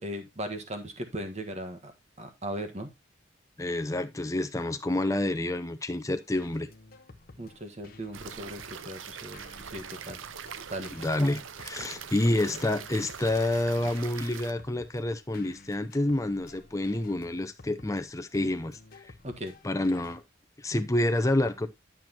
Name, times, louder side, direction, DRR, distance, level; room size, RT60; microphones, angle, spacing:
voice 1, 0.0-1.9 2.2-2.9 7.4-10.2 10.7-10.9 19.2-19.5, right 1 dB, 35° right, 1.5 m, -38 dB
voice 2, 3.6-6.7 10.9-19.1 19.6-20.2 20.6-21.7, left 1 dB, 15° left, 0.6 m, -28 dB
sound 1, 6.1-20.2, left 3 dB, 50° left, 0.9 m, -53 dB
sound 2, 8.1-14.5, right 7 dB, 85° right, 0.7 m, -42 dB
11.5 x 6.1 x 2.9 m
head